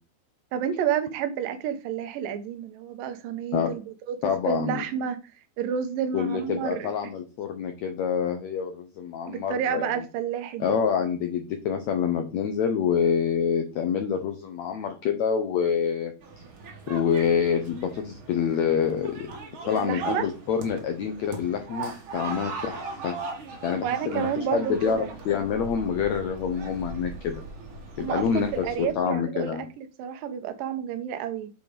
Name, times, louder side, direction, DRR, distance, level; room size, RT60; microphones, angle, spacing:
voice 1, 0.5-5.2 5.6-6.9 9.3-10.8 19.7-20.3 23.8-25.1 28.0-31.5, right 8 dB, 75° right, 2.4 m, -30 dB
voice 2, 4.2-4.8 6.1-10.0 10.6-16.1 16.9-19.3 19.6-23.1 23.6-27.4 28.0-29.6, left 7 dB, 80° left, 1.6 m, -27 dB
sound 1, 16.2-28.9, right 3 dB, 50° right, 1.6 m, -39 dB
8.0 x 4.8 x 5.1 m
omnidirectional pair, 4.4 m